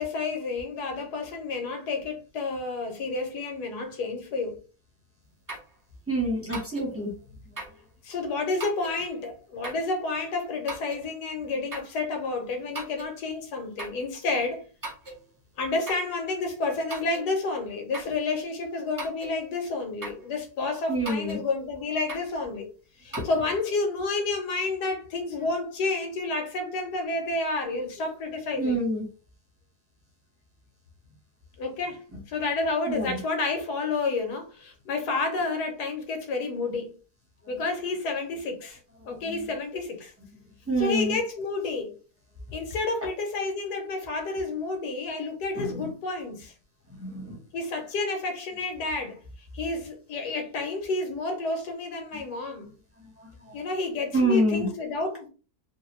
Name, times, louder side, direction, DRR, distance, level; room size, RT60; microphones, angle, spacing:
voice 1, 0.0-4.6 8.0-14.7 15.6-22.7 23.0-28.8 31.6-36.9 37.5-38.8 39.0-40.1 40.8-41.9 42.5-46.5 47.5-49.2 49.5-52.7 53.5-55.3, left 3 dB, 80° left, 1.4 m, -30 dB
sound 1, 5.5-5.7 6.5-6.9 7.6-7.8 8.6-9.0 9.6-9.9 10.7-11.0 11.7-12.0 12.7-13.1 13.8-14.0 14.8-15.2 15.8-16.1 16.9-17.3 17.9-18.2 19.0-19.4 20.0-20.3 21.0-21.4 22.1-22.3 23.1-23.3, right 2 dB, 30° right, 0.3 m, -38 dB
voice 2, 6.1-7.1 7.5-7.6 20.9-21.4 23.1-23.3 28.6-29.1 32.9-33.2 37.4-37.7 39.1-39.5 40.7-41.2 45.5-45.9 46.9-47.4 52.1-52.2 52.6-52.7 53.0-53.6 54.1-54.7, right 1 dB, 10° right, 0.9 m, -28 dB
3.1 x 2.1 x 3.0 m
omnidirectional pair, 1.7 m